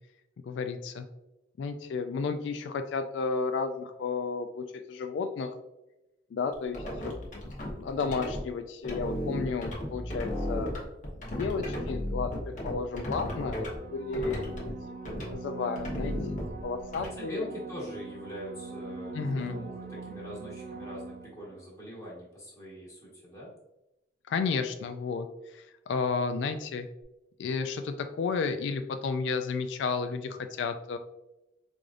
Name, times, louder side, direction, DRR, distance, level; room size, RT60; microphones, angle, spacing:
voice 1, 0.4-1.1 1.6-5.5 6.3-10.7 11.3-15.0 15.3-16.1 16.6-17.5 19.1-19.6 24.3-26.9 27.4-31.0, left 4 dB, 90° left, 7 dB, 0.3 m, -32 dB
sound 1, 6.5-8.4 8.8-13.8 14.1-14.7 15.0-15.3 15.8-17.1, left 1 dB, 45° left, 0.9 m, -35 dB
voice 2, 9.3-9.7 14.2-14.6 17.0-23.5, equal, 20° left, -6 dB, 1.2 m, -43 dB
sound 2, 13.1-21.7 27.0-27.1, right 3 dB, 45° right, 0.3 m, -42 dB
4.8 x 2.6 x 2.4 m, 0.95 s
head